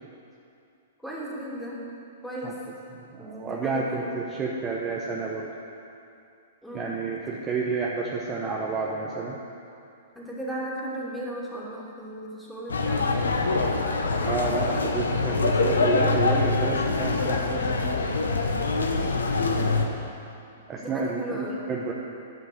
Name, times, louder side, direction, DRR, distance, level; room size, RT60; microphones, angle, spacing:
voice 1, 1.0-1.8 2.2-2.6 3.2-4.2 6.6-6.9 10.1-13.0 19.5-19.8 20.8-21.6, right 1 dB, ahead, -7 dB, 2.9 m, -36 dB
voice 2, 3.0-5.5 6.7-9.4 14.2-18.2 20.7-21.9, right 4 dB, 25° right, -3 dB, 1.0 m, -30 dB
sound 1, 12.7-19.9, left 3 dB, 90° left, 1.0 m, -24 dB
11.0 x 6.0 x 7.8 m, 2.6 s
hypercardioid pair, 120°, 0 cm